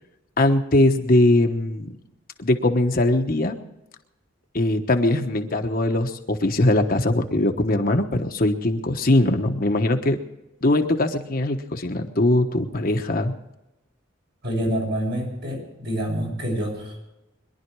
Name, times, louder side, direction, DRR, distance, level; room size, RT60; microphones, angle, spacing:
voice 1, 0.4-1.9 2.4-3.5 4.5-10.2 10.6-13.3, left 1 dB, 45° left, 5 dB, 1.1 m, -21 dB
voice 2, 14.4-17.1, equal, 55° right, 0 dB, 6.9 m, -27 dB
22.5 x 11.5 x 4.7 m, 0.93 s
head